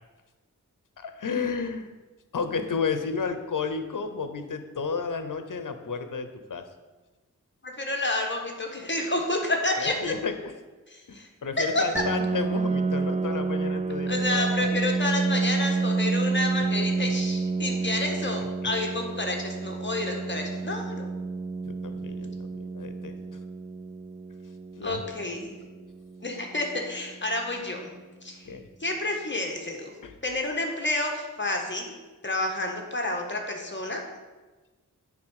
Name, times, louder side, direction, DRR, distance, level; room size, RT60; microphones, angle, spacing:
voice 1, 1.0-1.9 2.3-6.6 9.8-10.5 11.1-14.7 21.6-23.2 24.8-25.0 28.4-28.7 30.0-30.1, left 5 dB, 70° left, 8 dB, 0.9 m, -32 dB
voice 2, 7.6-10.1 10.9-11.3 11.6-11.9 14.1-21.1 24.8-25.6 26.2-27.9 28.2-28.6 28.8-29.9 30.2-31.9 32.2-34.0, left 2 dB, 35° left, 2 dB, 1.6 m, -29 dB
Piano, 11.9-27.4, right 4 dB, 25° right, 0.3 m, -30 dB
9.5 x 4.0 x 6.5 m, 1.2 s
wide cardioid pair, 55°, 33 cm